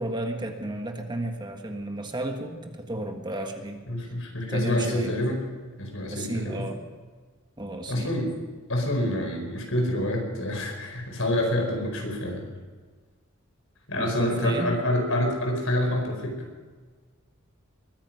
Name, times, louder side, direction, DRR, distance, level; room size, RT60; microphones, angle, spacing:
voice 1, 0.0-3.8 4.5-5.1 6.1-6.8 7.6-8.1 14.0-14.7, right 1 dB, 20° right, 4 dB, 1.5 m, -32 dB
voice 2, 3.9-5.4 5.8-6.7 7.9-8.3 8.7-12.4 13.9-16.5, left 1 dB, 70° left, 2 dB, 4.8 m, -27 dB
22.0 x 10.0 x 6.3 m, 1.5 s
head